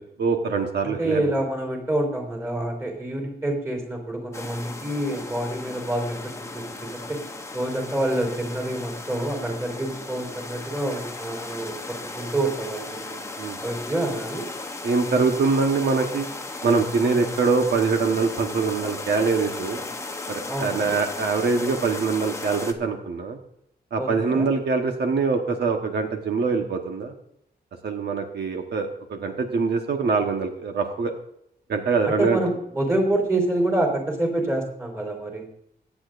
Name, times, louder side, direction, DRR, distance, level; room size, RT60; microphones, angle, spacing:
voice 1, 0.2-1.3 13.4-13.6 14.8-16.3 16.6-19.8 20.3-23.4 23.9-27.1 27.8-31.1 31.7-32.4, right 4 dB, 75° right, 3 dB, 1.2 m, -24 dB
voice 2, 0.8-7.2 7.5-13.2 13.6-14.4 20.5-21.0 24.0-24.5 32.1-35.5, right 1 dB, 15° right, 2 dB, 3.5 m, -27 dB
sound 1, 4.3-22.7, left 2 dB, 15° left, 0.8 m, -36 dB
22.5 x 8.8 x 2.5 m, 0.76 s
wide cardioid pair, 160°, 17 cm